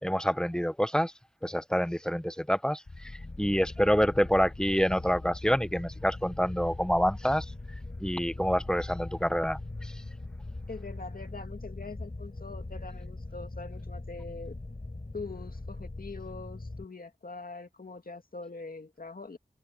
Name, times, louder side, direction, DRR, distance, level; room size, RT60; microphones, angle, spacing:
voice 1, 0.0-1.1 1.4-3.1 3.4-7.4 8.0-9.9, equal, 5° left, 1.2 m, -27 dB
sound 1, 2.9-16.8, left 2 dB, 45° left, 6.6 m, -41 dB
voice 2, 10.7-14.6 15.1-19.4, left 3 dB, 60° left, 2.2 m, -43 dB
wide cardioid pair, 45°, 17 cm